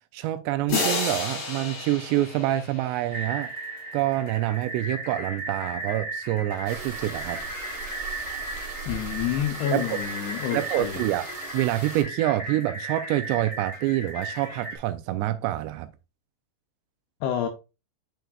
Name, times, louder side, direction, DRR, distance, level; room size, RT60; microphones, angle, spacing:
voice 1, 0.1-3.5 3.9-7.5 9.7-10.0 10.5-11.3 11.5-15.9, right 14 dB, 85° right, 2.7 m, -26 dB
sound 1, 0.7-3.5, left 2 dB, 40° left, 1.6 m, -30 dB
sound 2, 3.1-14.8, right 2 dB, 10° left, 1.9 m, -36 dB
sound 3, 6.6-12.0, right 3 dB, 30° right, 1.4 m, -39 dB
voice 2, 8.9-11.1 17.2-17.5, left 10 dB, 80° left, 2.3 m, -28 dB
9.1 x 4.7 x 2.3 m
omnidirectional pair, 5.1 m